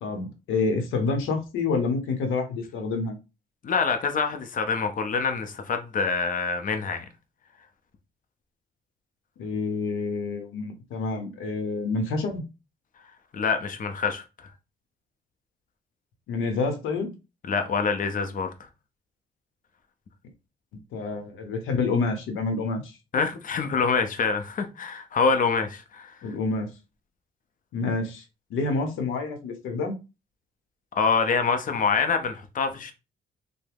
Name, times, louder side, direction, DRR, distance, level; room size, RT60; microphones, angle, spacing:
voice 1, 0.0-3.2 9.4-12.4 16.3-17.1 20.7-22.9 26.2-26.7 27.7-28.2 28.5-29.9, left 3 dB, 85° left, 0.8 m, -28 dB
voice 2, 3.6-7.1 13.3-14.5 17.5-18.5 23.1-26.3 31.0-32.9, left 5 dB, 45° left, 0.6 m, -26 dB
3.2 x 2.1 x 3.4 m
cardioid pair, 90°, 20 cm